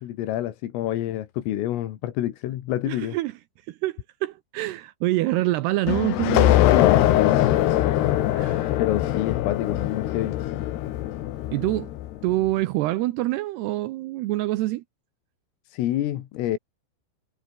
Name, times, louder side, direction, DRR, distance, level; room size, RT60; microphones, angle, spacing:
voice 1, 0.0-3.2 6.7-7.6 8.8-10.4 15.7-16.6, left 13 dB, 90° left, 4.5 m, -27 dB
voice 2, 2.9-3.3 3.7-3.9 4.2-6.6 8.3-8.7 11.5-11.9 12.2-14.8, right 17 dB, 90° right, 2.3 m, -26 dB
sound 1, 5.9-12.2, left 14 dB, 65° left, 3.0 m, -22 dB
omnidirectional pair, 5.8 m